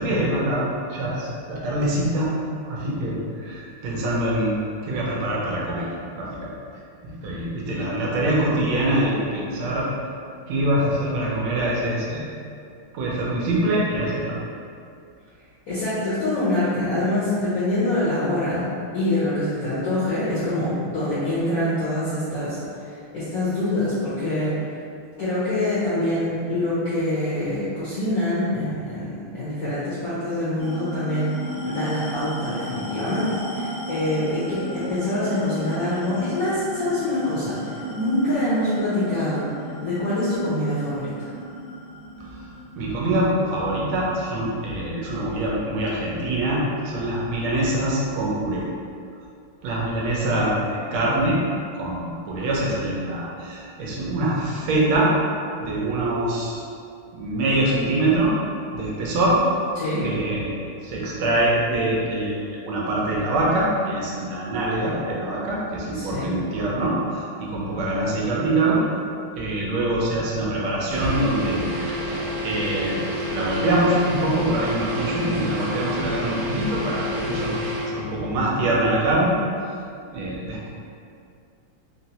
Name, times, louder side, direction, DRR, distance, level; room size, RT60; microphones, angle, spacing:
voice 1, 0.0-2.3 2.7-4.6 4.8-5.9 6.1-6.6 7.0-9.9 10.5-12.3 12.9-14.3 42.8-48.6 49.6-51.4 51.7-55.1 55.6-56.6 57.1-58.3 58.7-59.4 60.0-68.8 69.3-72.0 72.4-73.0 73.3-77.6 77.8-79.3 80.1-80.7, right 1 dB, 90° right, -4 dB, 1.5 m, -24 dB
voice 2, 15.7-18.6 18.9-22.6 22.8-24.5 25.2-31.3 31.6-39.5 39.8-41.3 59.8-60.1 65.9-66.3, left 1 dB, 70° left, -11 dB, 0.9 m, -25 dB
sound 1, 30.6-45.4, equal, ahead, 0.5 m, -35 dB
sound 2, 70.9-78.0, equal, 75° right, 1.1 m, -28 dB
4.0 x 2.0 x 2.7 m, 2.4 s
omnidirectional pair, 2.3 m